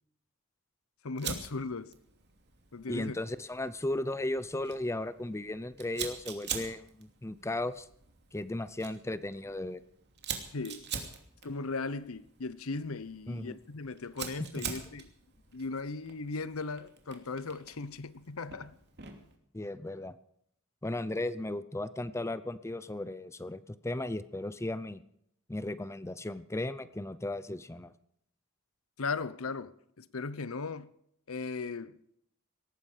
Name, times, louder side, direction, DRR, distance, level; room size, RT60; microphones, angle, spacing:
voice 1, 1.0-2.0 2.7-3.1 10.5-10.9 11.4-15.1 15.5-18.8 29.0-30.9 31.3-32.0, left 4 dB, 85° left, 0.9 m, -37 dB
Fire, 1.2-19.4, right 7 dB, 55° right, 2.7 m, -45 dB
voice 2, 2.9-7.9 8.3-9.8 13.3-13.6 14.4-14.6 19.5-20.1 20.8-25.0 25.5-27.9, left 1 dB, 15° left, 0.6 m, -36 dB
19.0 x 14.5 x 5.0 m
head